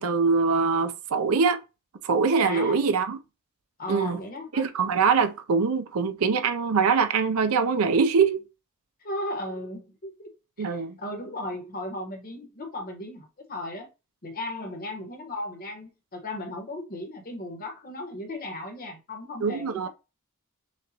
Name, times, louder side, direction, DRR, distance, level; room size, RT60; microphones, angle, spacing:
voice 1, 0.0-1.6 2.0-3.2 3.9-4.2 4.5-8.4 10.6-11.0 19.4-19.9, right 5 dB, 75° right, 0.5 m, -23 dB
voice 2, 2.4-2.9 3.8-4.7 9.0-10.3 10.6-13.9 14.2-19.9, left 1 dB, 40° left, 1.2 m, -36 dB
6.3 x 2.4 x 2.8 m
head